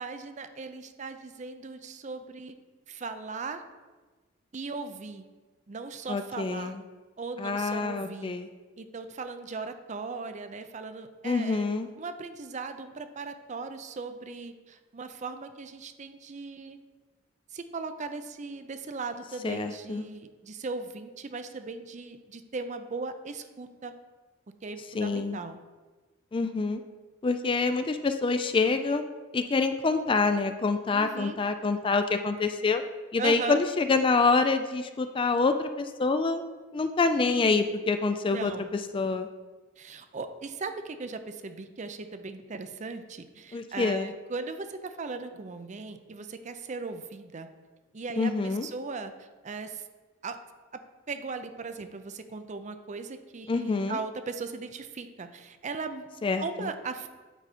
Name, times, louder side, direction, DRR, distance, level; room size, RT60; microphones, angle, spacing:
voice 1, 0.0-2.6 2.9-3.6 4.5-5.3 5.7-6.7 7.2-8.3 8.8-11.7 12.0-16.8 17.5-23.9 24.6-25.6 30.9-31.4 33.2-33.6 37.2-37.6 38.3-38.7 39.8-47.5 47.9-49.8 50.2-50.4 50.7-50.8 51.1-56.0 56.4-57.1, right 4 dB, 40° right, 9 dB, 0.5 m, -38 dB
voice 2, 6.1-6.8 7.4-8.5 11.2-11.9 19.4-20.0 24.9-25.4 26.3-26.8 27.2-29.0 29.3-32.8 33.1-36.4 36.7-38.6 38.9-39.3 43.5-44.1 48.2-48.7 53.5-54.0 56.2-56.7, left 4 dB, 25° left, 9 dB, 0.4 m, -26 dB
9.0 x 4.9 x 4.2 m, 1.3 s
head